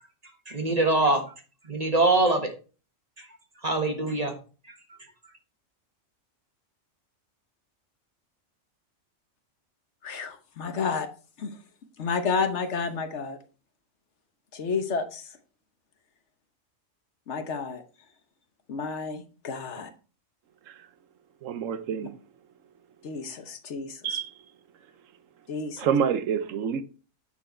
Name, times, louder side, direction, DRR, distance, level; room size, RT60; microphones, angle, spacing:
voice 1, 0.5-1.2 1.6-2.5 3.6-4.3, right 2 dB, 30° right, 1.5 m, -23 dB
voice 2, 10.0-11.1 11.4-11.5 12.0-13.4 14.5-15.3 17.3-17.8 18.7-19.9 23.0-24.2 25.5-25.9, left 5 dB, 60° left, 1.2 m, -31 dB
voice 3, 21.4-22.2 24.0-24.3 25.8-26.8, right 7 dB, 80° right, 1.1 m, -27 dB
10.0 x 4.6 x 4.3 m
omnidirectional pair, 1.4 m